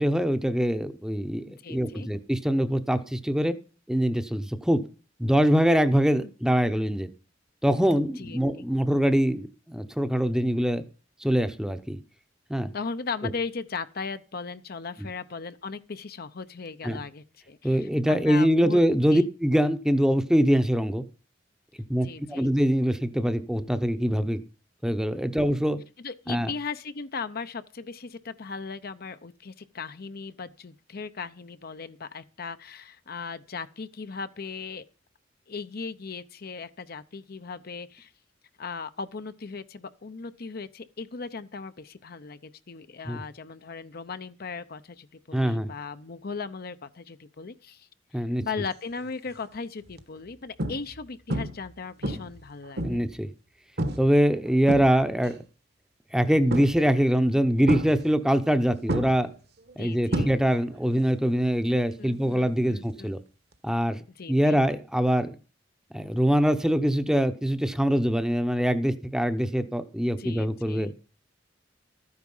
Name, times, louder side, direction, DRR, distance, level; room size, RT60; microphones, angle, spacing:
voice 1, 0.0-3.5 3.9-4.8 5.2-7.1 7.6-10.8 11.2-12.0 12.5-12.7 16.8-17.0 17.6-21.0 21.9-24.4 24.8-25.8 26.3-26.5 43.1-43.2 45.3-45.7 48.1-48.4 52.8-53.3 54.0-55.4 56.1-59.3 59.8-63.2 63.6-64.0 64.3-65.4 65.9-71.0, equal, 5° right, 0.8 m, -24 dB
voice 2, 1.6-2.1 6.1-6.3 8.2-8.7 12.7-18.8 19.1-19.3 22.0-22.5 25.3-25.5 26.0-34.8 35.5-38.1 38.6-53.0 59.8-60.3 62.0-63.1 64.2-64.6 70.2-70.9, left 4 dB, 55° left, 0.7 m, -38 dB
sound 1, 49.0-49.3 49.9-50.0 50.6-51.0 51.3-51.7 52.0-53.2 53.8-54.1 54.5-55.3 56.5-57.0 57.7-58.6 58.9-60.8 61.0-61.4 63.5-63.6, right 1 dB, 60° right, 1.4 m, -30 dB
13.0 x 9.7 x 5.5 m
head